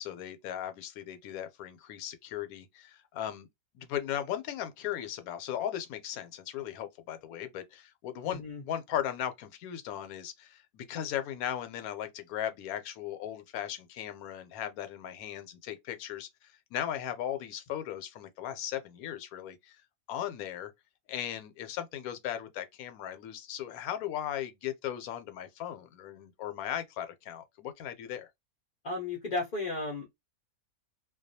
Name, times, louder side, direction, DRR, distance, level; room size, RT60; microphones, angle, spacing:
voice 1, 0.0-3.5 3.7-19.8 20.1-20.7 21.1-28.3, left 10 dB, 80° left, 1.0 m, -37 dB
voice 2, 8.2-8.6 28.8-30.2, left 3 dB, 55° left, 0.5 m, -34 dB
2.3 x 2.2 x 2.7 m
omnidirectional pair, 1.6 m